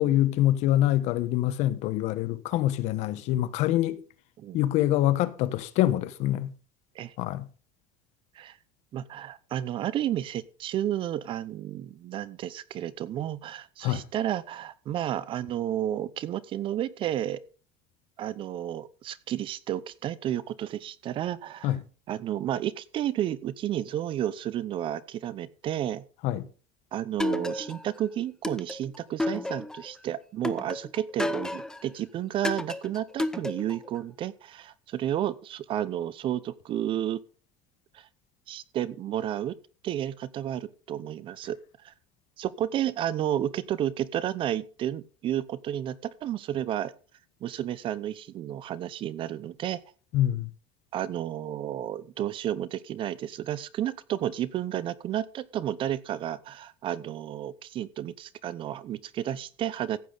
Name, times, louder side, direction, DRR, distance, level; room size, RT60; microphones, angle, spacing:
voice 1, 0.0-4.0 4.5-6.5 7.2-7.5 13.8-14.1 21.6-21.8 26.2-26.5 50.1-50.5, left 13 dB, 60° left, 1.0 m, -25 dB
voice 2, 8.9-17.4 18.2-21.7 22.1-26.0 26.9-37.2 37.9-38.1 38.5-39.5 39.8-41.6 41.8-41.9 42.4-46.9 47.4-49.8 50.9-60.0, right 11 dB, 40° right, 0.7 m, -32 dB
sound 1, 27.2-28.0 28.4-29.9 30.4-31.9 32.4-33.9, left 1 dB, 5° left, 0.7 m, -31 dB
15.0 x 8.4 x 3.9 m
cardioid pair, 145°, 13 cm